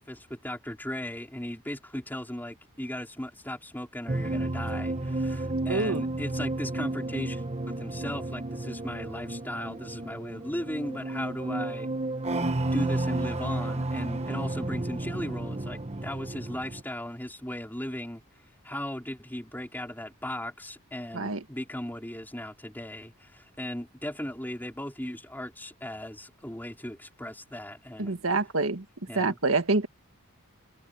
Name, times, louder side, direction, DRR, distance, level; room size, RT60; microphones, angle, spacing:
voice 1, 0.0-11.9 12.7-18.2 18.6-28.2 29.1-29.4, left 1 dB, 10° left, 3.6 m, -37 dB
sound 1, 4.1-16.8, right 2 dB, 30° right, 1.2 m, -32 dB
voice 2, 5.7-6.0 21.1-21.4 28.0-28.8 29.2-29.9, right 3 dB, 65° right, 1.8 m, -26 dB
head